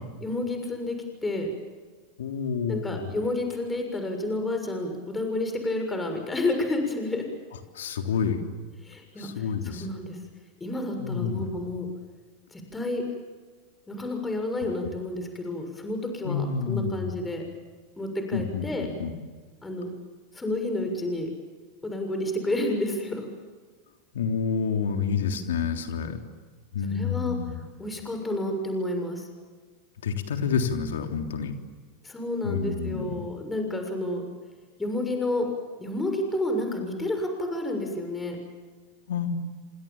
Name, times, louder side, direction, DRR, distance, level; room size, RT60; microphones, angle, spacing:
voice 1, 0.2-1.5 2.7-7.3 8.8-10.2 10.6-11.9 12.5-13.0 13.9-17.4 18.0-18.9 19.6-19.9 20.3-21.3 21.8-23.3 26.9-29.3 32.0-34.2 34.8-35.5 35.8-38.4, left 1 dB, 15° left, 4 dB, 6.8 m, -30 dB
voice 2, 2.2-3.2 7.8-8.4 9.2-9.9 11.0-11.5 16.2-17.1 18.3-18.6 19.0-19.1 24.1-26.2 26.7-27.6 30.0-31.5 32.4-33.1 39.1-39.3, left 6 dB, 75° left, 5 dB, 3.5 m, -28 dB
29.0 x 26.5 x 7.5 m, 1.5 s
hypercardioid pair, 90°, 0 cm